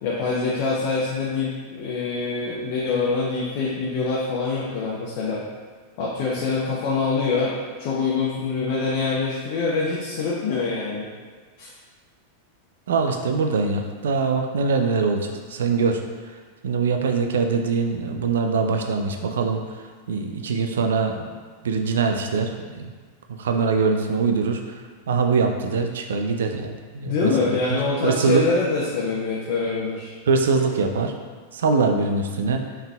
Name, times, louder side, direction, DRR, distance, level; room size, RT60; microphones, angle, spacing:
voice 1, 0.0-5.4 6.0-7.5 7.8-11.1 11.6-11.7 27.0-30.1, left 4 dB, 45° left, -6 dB, 0.7 m, -25 dB
voice 2, 12.9-16.0 16.6-19.6 20.1-21.2 21.6-22.9 23.4-24.6 25.1-27.3 27.7-28.4 30.3-31.1 31.5-32.6, right 4 dB, 65° right, 5 dB, 0.4 m, -23 dB
5.5 x 3.5 x 2.3 m, 1.5 s
figure-of-eight pair, 90°, 0 cm